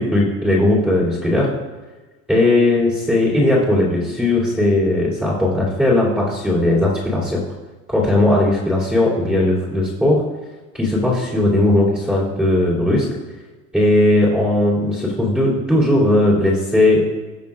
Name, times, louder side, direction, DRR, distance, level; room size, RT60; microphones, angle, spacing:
voice 1, 0.0-1.5 2.3-7.4 7.9-10.2 10.7-13.1 13.7-17.0, left 1 dB, 5° right, -8 dB, 2.9 m, -17 dB
20.0 x 6.8 x 2.5 m, 1.2 s
cardioid pair, 160°, 35 cm